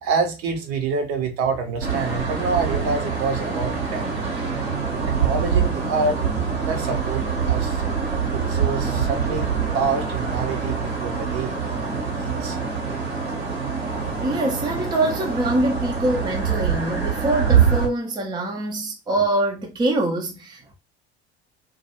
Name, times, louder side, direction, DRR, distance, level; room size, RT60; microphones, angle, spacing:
voice 1, 0.0-4.0 4.9-6.3 6.6-7.8 8.3-12.6, right 4 dB, 50° right, 0.8 m, -27 dB
sound 1, 1.8-17.9, right 6 dB, 85° right, 1.0 m, -24 dB
voice 2, 14.2-20.7, right 2 dB, 15° right, 0.5 m, -24 dB
2.3 x 2.2 x 2.8 m
figure-of-eight pair, 65°, 32 cm